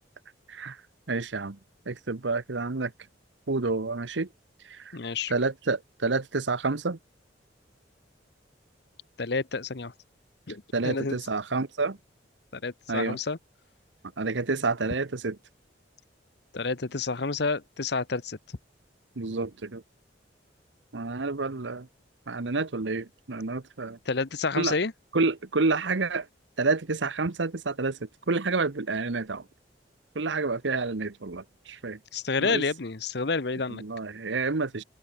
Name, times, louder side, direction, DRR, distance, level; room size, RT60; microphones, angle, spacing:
voice 1, 0.5-0.8 1.1-1.6 1.9-2.9 3.5-4.3 4.6-5.0 5.3-7.0 10.7-12.0 12.9-13.2 14.2-15.4 19.2-19.8 20.9-21.9 22.3-24.0 24.6-24.8 25.1-26.3 26.6-29.5 30.1-32.0 32.4-32.6 33.7-34.8, right 3 dB, 80° right, 1.1 m, -29 dB
voice 2, 4.9-5.3 9.2-9.9 10.5-11.2 12.5-13.4 16.5-18.4 24.1-24.9 32.1-33.8, left 4 dB, 60° left, 1.0 m, -29 dB
head